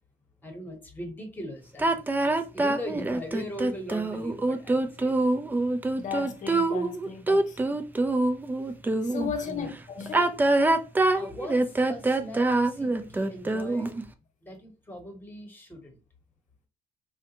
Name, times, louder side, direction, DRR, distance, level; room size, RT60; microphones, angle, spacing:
voice 1, 0.4-5.1 9.4-9.7 11.1-14.0 14.4-16.0, equal, 10° left, 1.0 m, -40 dB
sound 1, 1.8-9.3 10.0-14.0, right 2 dB, 10° right, 0.3 m, -25 dB
voice 2, 6.0-7.8 9.0-10.4, left 6 dB, 45° left, 0.7 m, -36 dB
3.7 x 2.2 x 2.8 m
cardioid pair, 110°, 17 cm